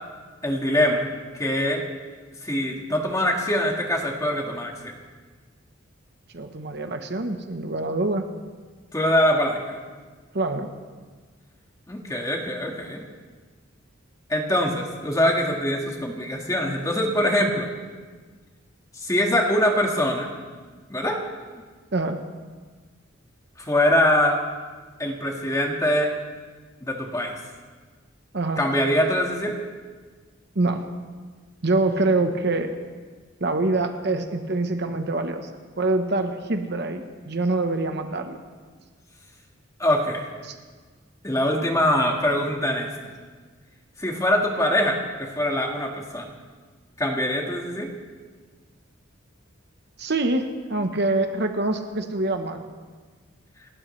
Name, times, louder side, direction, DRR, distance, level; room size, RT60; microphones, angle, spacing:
voice 1, 0.4-1.1 1.4-1.8 2.4-4.9 8.9-9.8 11.9-13.0 14.3-17.7 19.0-20.3 20.9-21.2 23.6-24.4 25.0-26.1 26.8-27.4 28.6-29.6 39.8-40.3 41.2-42.9 44.0-46.3 47.0-47.9, left 1 dB, 15° left, 1 dB, 1.7 m, -23 dB
voice 2, 6.3-8.3 10.3-10.7 21.9-22.2 28.3-28.6 30.5-30.9 31.6-32.7 33.4-35.5 35.8-38.4 40.4-40.6 50.0-52.6, right 2 dB, 55° right, 6 dB, 1.0 m, -25 dB
29.0 x 12.5 x 3.3 m, 1.5 s
head